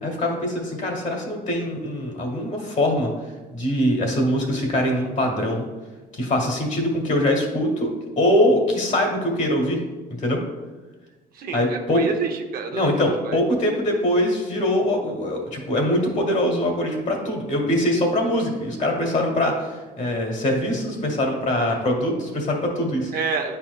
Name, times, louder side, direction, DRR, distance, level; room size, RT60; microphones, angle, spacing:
voice 1, 0.0-3.1 3.5-5.7 6.1-7.9 8.2-9.8 10.2-10.4 11.5-12.0 12.7-23.1, left 1 dB, 45° left, 0 dB, 1.7 m, -23 dB
voice 2, 11.3-13.0 13.2-13.4 23.1-23.6, right 5 dB, 60° right, 4 dB, 0.8 m, -28 dB
9.6 x 4.4 x 2.3 m, 1.2 s
cardioid pair, 110°, 17 cm